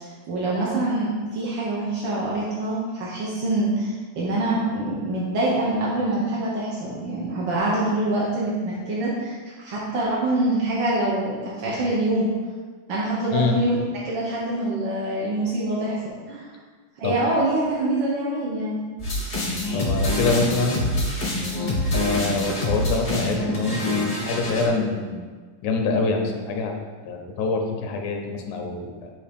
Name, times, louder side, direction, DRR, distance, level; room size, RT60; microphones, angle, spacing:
voice 1, 0.0-12.3 12.9-13.8 14.0-16.0 16.3-16.5 17.0-18.8, right 1 dB, 70° right, -6 dB, 1.2 m, -25 dB
voice 2, 13.3-13.7 17.0-17.2 19.7-20.9 21.9-25.2 25.6-26.7 27.1-29.1, left 3 dB, 90° left, 2 dB, 2.2 m, -25 dB
sound 1, 19.0-24.6, left 1 dB, 55° left, 0.5 m, -25 dB
7.6 x 2.9 x 5.1 m, 1.5 s
omnidirectional pair, 3.3 m